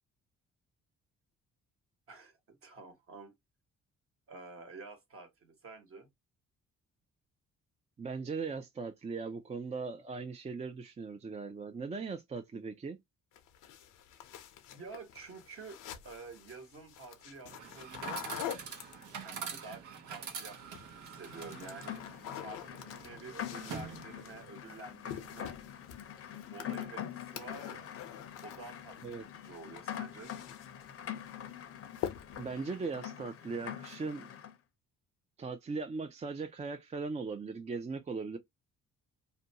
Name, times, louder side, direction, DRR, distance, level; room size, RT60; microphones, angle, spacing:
voice 1, 2.1-3.3 4.3-6.1 14.7-18.3 19.2-25.6 26.5-27.9 28.4-30.3, right 3 dB, 45° right, 1.1 m, -49 dB
voice 2, 8.0-13.0 29.0-29.2 32.4-34.3 35.4-38.4, right 4 dB, 20° right, 0.4 m, -39 dB
sound 1, 13.3-19.4 20.5-21.0 21.3-29.2 29.4-30.9 31.3-31.6 31.9-32.5, left 10 dB, 85° left, 0.7 m, -46 dB
Chatter / Coin (dropping), 17.5-24.5, right 6 dB, 80° right, 0.9 m, -45 dB
Rain, 21.2-34.5, left 10 dB, 50° left, 0.6 m, -45 dB
2.5 x 2.2 x 2.7 m
cardioid pair, 90°, 30 cm